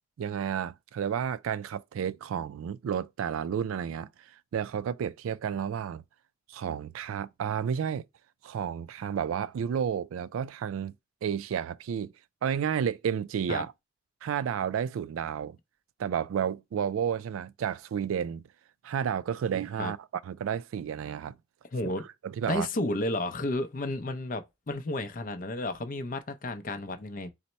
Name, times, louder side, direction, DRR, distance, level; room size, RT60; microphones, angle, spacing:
voice 1, 0.2-4.1 4.5-6.0 6.5-8.0 8.4-11.0 11.2-12.1 12.4-13.7 14.2-15.6 16.0-18.4 18.8-20.0 20.2-21.4 22.2-22.7, right 8 dB, 90° right, 0.3 m, -31 dB
voice 2, 21.7-22.1 22.5-27.3, left 2 dB, 40° left, 0.5 m, -32 dB
4.0 x 2.0 x 4.3 m
head